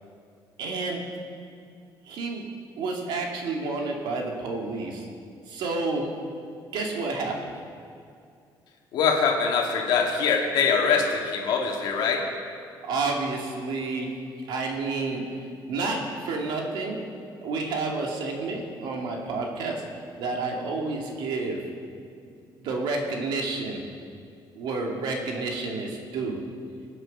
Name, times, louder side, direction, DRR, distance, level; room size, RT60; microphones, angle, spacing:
voice 1, 0.6-1.0 2.1-2.5 2.8-5.1 5.5-6.1 6.7-7.5 12.8-14.1 14.5-17.0 17.4-19.8 20.2-21.6 22.6-23.8 24.6-26.4, right 3 dB, 70° right, 1 dB, 2.4 m, -30 dB
voice 2, 8.9-12.3, left 5 dB, 60° left, 1 dB, 2.1 m, -23 dB
24.0 x 8.0 x 5.5 m, 2.4 s
cardioid pair, 175°, 8 cm